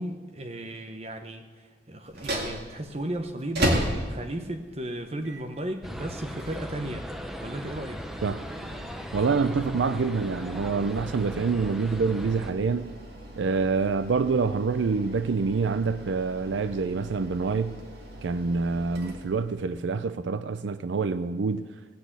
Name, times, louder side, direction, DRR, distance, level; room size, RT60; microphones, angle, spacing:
voice 1, 0.0-7.1 7.4-8.1, right 1 dB, 35° right, 1.0 m, -35 dB
sound 1, 2.0-19.8, right 1 dB, 65° right, 2.2 m, -37 dB
sound 2, 5.8-12.5, equal, ahead, 0.6 m, -38 dB
voice 2, 9.1-12.9 13.4-17.8 18.2-21.7, right 4 dB, 90° right, 0.4 m, -26 dB
18.0 x 6.1 x 8.2 m
head